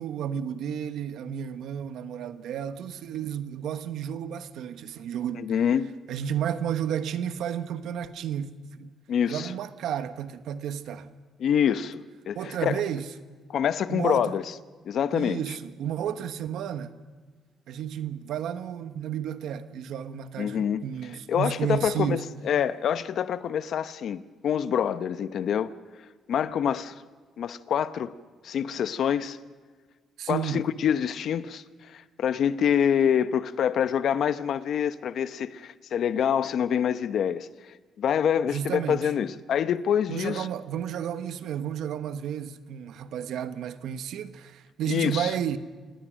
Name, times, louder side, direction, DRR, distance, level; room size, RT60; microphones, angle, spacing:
voice 1, 0.0-5.5 6.1-8.9 9.3-11.1 12.3-13.1 13.9-14.4 15.1-17.0 17.7-22.2 30.2-30.7 38.5-39.1 40.1-45.6, right 9 dB, 80° right, 1.2 m, -32 dB
voice 2, 5.4-5.9 9.1-9.5 11.4-12.8 13.5-14.4 14.9-15.4 20.4-20.8 21.3-22.2 22.4-25.7 26.3-26.9 27.4-28.1 28.4-29.4 30.3-37.5 38.0-40.5 44.9-45.3, left 8 dB, 65° left, 0.8 m, -26 dB
27.5 x 19.0 x 6.4 m
cardioid pair, 90°, 0 cm